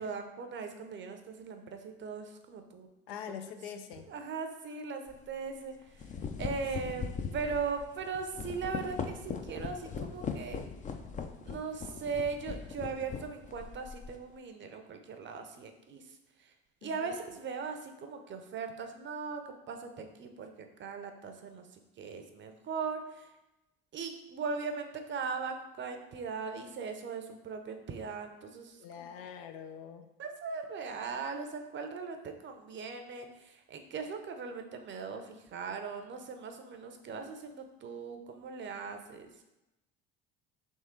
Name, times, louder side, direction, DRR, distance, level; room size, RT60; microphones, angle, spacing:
voice 1, 0.0-2.9 3.3-3.4 4.1-10.6 11.4-16.5 16.8-21.7 22.0-23.3 23.9-29.1 30.2-39.4, right 5 dB, 40° right, 6 dB, 0.6 m, -39 dB
voice 2, 3.1-4.1 6.8-7.6 16.8-17.2 28.8-30.1, left 8 dB, 75° left, 7 dB, 0.5 m, -45 dB
sound 1, 5.1-5.3 5.8-14.2, left 5 dB, 25° left, 0.4 m, -40 dB
3.7 x 3.0 x 4.4 m, 0.95 s
hypercardioid pair, 65°, 30 cm